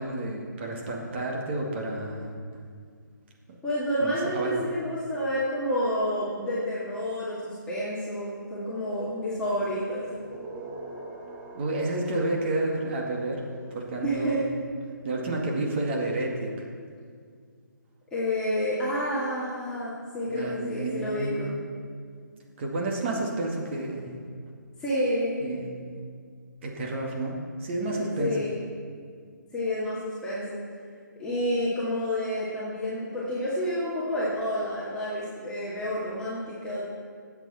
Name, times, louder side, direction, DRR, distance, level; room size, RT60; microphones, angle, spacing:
voice 1, 0.0-2.4 3.5-3.6 4.0-4.6 11.5-13.4 13.7-14.4 15.0-16.5 20.3-21.5 22.6-24.1 25.4-26.0 26.6-28.3, right 2 dB, 35° right, -1 dB, 2.2 m, -30 dB
voice 2, 3.6-10.1 14.0-14.4 18.1-21.5 24.8-25.4 28.0-28.6 29.5-30.6 31.2-36.8, equal, 10° left, -10 dB, 2.1 m, -29 dB
sound 1, 9.0-14.0, right 2 dB, 15° right, 1.2 m, -44 dB
21.0 x 8.2 x 4.3 m, 2.1 s
hypercardioid pair, 155°, 11 cm